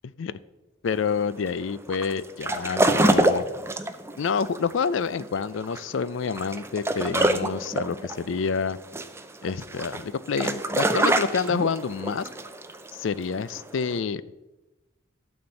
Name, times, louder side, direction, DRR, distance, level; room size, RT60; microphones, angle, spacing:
voice 1, 0.8-3.5 4.2-8.8 9.4-12.3 12.9-14.2, left 5 dB, 70° left, 17 dB, 0.4 m, -28 dB
sound 1, 0.9-14.0, right 1 dB, 15° right, 0.6 m, -26 dB
12.5 x 4.4 x 7.9 m, 1.1 s
head